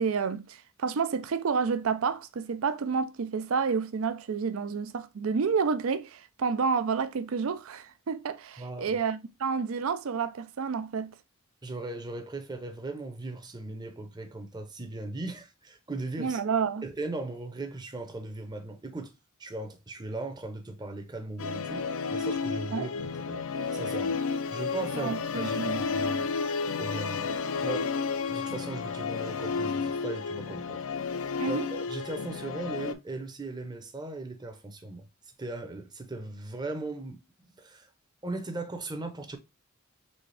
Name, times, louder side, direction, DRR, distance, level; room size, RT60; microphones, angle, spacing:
voice 1, 0.0-11.1 16.2-16.9 22.7-22.9 24.9-25.8 31.4-31.7, right 5 dB, 75° right, 0.5 m, -29 dB
voice 2, 8.6-9.0 11.6-16.4 16.8-19.1 19.4-22.9 23.3-23.4 23.7-24.2 24.5-26.2 26.8-30.8 31.5-35.1 35.4-37.2 37.6-37.9 38.2-39.4, right 2 dB, 20° right, 0.7 m, -38 dB
Musical instrument, 21.4-32.9, left 5 dB, 75° left, 0.4 m, -32 dB
4.2 x 3.4 x 3.3 m
head